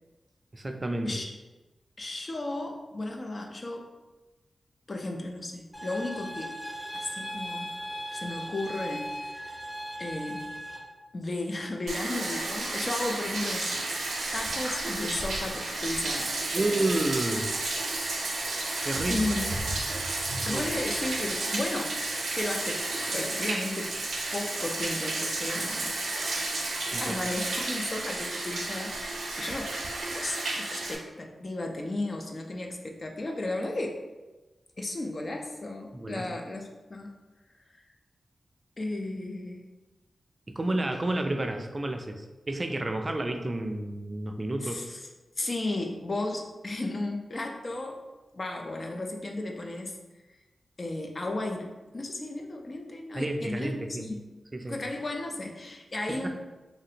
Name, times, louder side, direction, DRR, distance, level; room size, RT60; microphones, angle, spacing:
voice 1, 0.5-1.1 16.5-17.5 18.8-19.4 20.5-20.7 26.9-27.2 35.9-36.3 40.5-44.8 53.1-54.1 54.5-54.8 56.1-56.3, right 1 dB, 35° right, 5 dB, 0.3 m, -30 dB
voice 2, 2.0-3.9 4.9-6.6 6.9-7.8 8.1-9.6 10.0-10.5 11.1-13.8 14.3-16.9 19.1-19.5 20.5-23.9 24.3-25.9 27.0-29.7 30.1-34.0 34.8-36.6 36.9-37.1 37.7-37.8 38.8-39.7 44.6-45.0 45.4-48.0 48.3-50.0 50.8-54.2 54.7-56.3, left 2 dB, 45° left, 2 dB, 0.4 m, -34 dB
sound 1, 5.7-10.8, equal, 15° left, 0.9 m, -38 dB
Bathtub (filling or washing), 11.9-31.0, right 2 dB, 90° right, 0.5 m, -32 dB
3.2 x 2.5 x 2.8 m, 1.1 s
cardioid pair, 70°, 0 cm